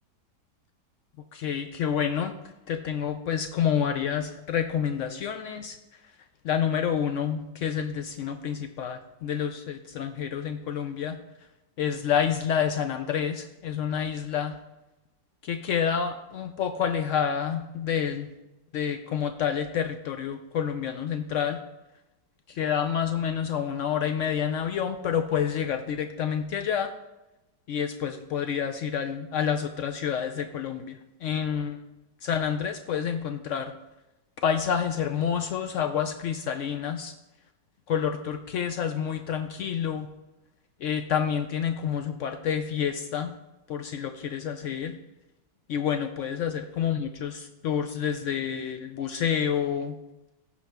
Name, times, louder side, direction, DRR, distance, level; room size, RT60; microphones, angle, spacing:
voice 1, 1.3-2.3 2.7-6.1 6.4-11.2 11.8-14.5 15.4-18.3 18.7-21.6 22.5-26.9 27.7-31.8 32.2-33.7 34.4-37.1 37.9-40.1 40.8-43.3 43.7-45.0 45.7-49.9, left 8 dB, 80° left, 7 dB, 0.6 m, -28 dB
14.5 x 5.0 x 3.4 m, 1.0 s
omnidirectional pair, 1.8 m